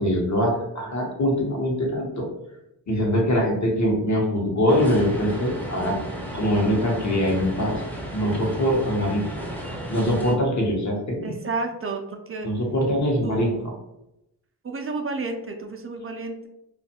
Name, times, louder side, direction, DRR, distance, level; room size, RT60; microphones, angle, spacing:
voice 1, 0.0-2.3 2.9-6.0 6.3-7.8 8.1-9.2 9.9-11.3 12.4-13.5, equal, 45° left, 0 dB, 0.9 m, -23 dB
sound 1, 4.7-10.3, equal, 5° left, 0.6 m, -34 dB
voice 2, 11.2-12.5 13.2-13.6 14.6-16.5, right 3 dB, 35° right, 4 dB, 0.4 m, -31 dB
2.5 x 2.4 x 2.7 m, 0.87 s
cardioid pair, 55°, 41 cm